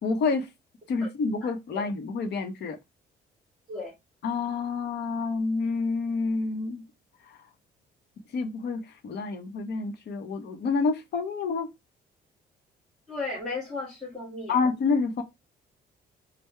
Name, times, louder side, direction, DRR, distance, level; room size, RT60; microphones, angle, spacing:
voice 1, 0.0-0.5 0.9-2.8 4.2-6.8 7.3-7.4 8.3-11.7 14.5-15.2, left 4 dB, 65° left, 0.9 m, -28 dB
voice 2, 1.4-1.9 3.7-4.0 13.1-14.6, left 3 dB, ahead, 1.7 m, -35 dB
3.6 x 2.2 x 4.1 m
cardioid pair, 90°, 19 cm